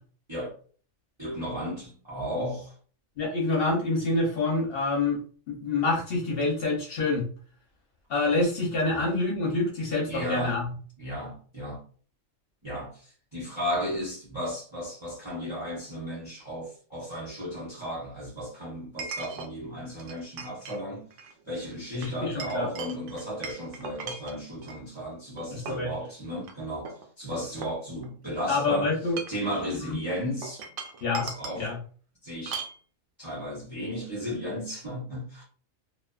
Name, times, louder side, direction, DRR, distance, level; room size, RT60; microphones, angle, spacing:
voice 1, 1.2-2.7 8.9-9.1 10.1-10.6 11.0-11.8 12.6-21.1 21.4-26.9 27.2-28.9 29.3-30.6 31.2-31.7 32.2-32.6 33.2-35.4, equal, 25° right, 0.7 m, -34 dB
voice 2, 3.2-5.2 5.5-7.3 8.1-10.7 22.0-22.7 25.5-25.9 28.5-29.2 29.8-30.0 31.0-31.3 31.6-31.8, left 3 dB, 50° left, 0.9 m, -27 dB
Chink clink, 15.5-15.6 19.0-19.5 20.0-20.8 21.1-21.3 22.0-24.8 25.4-25.9 26.4-26.5 26.9-28.3 29.0-29.5 30.4-31.6 32.5-32.8, right 5 dB, 70° right, 0.8 m, -39 dB
2.5 x 2.3 x 2.3 m
omnidirectional pair, 1.4 m